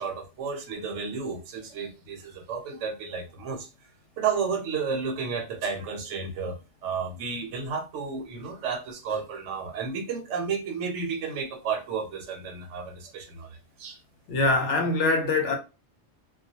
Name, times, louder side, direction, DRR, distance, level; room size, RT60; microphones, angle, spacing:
voice 1, 0.0-3.7 4.2-14.0, right 5 dB, 75° right, 0.9 m, -32 dB
voice 2, 14.3-15.6, left 2 dB, 75° left, 0.9 m, -23 dB
2.3 x 2.1 x 2.7 m
omnidirectional pair, 1.3 m